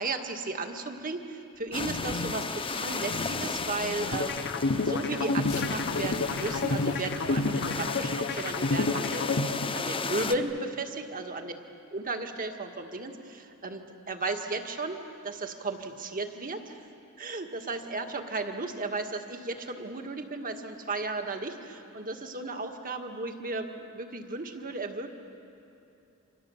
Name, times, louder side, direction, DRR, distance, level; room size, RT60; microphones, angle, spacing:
voice 1, 0.0-4.4 4.8-9.3 9.7-11.5 11.9-15.0 15.2-16.8 17.2-25.1, right 3 dB, 40° right, 5 dB, 1.9 m, -35 dB
sound 1, 1.7-9.1, left 4 dB, 75° left, 0.8 m, -41 dB
sound 2, 1.7-10.3, left 4 dB, 25° left, 1.0 m, -35 dB
sound 3, 4.1-10.1, left 3 dB, 50° left, 1.1 m, -29 dB
30.0 x 26.5 x 7.3 m, 2.8 s
head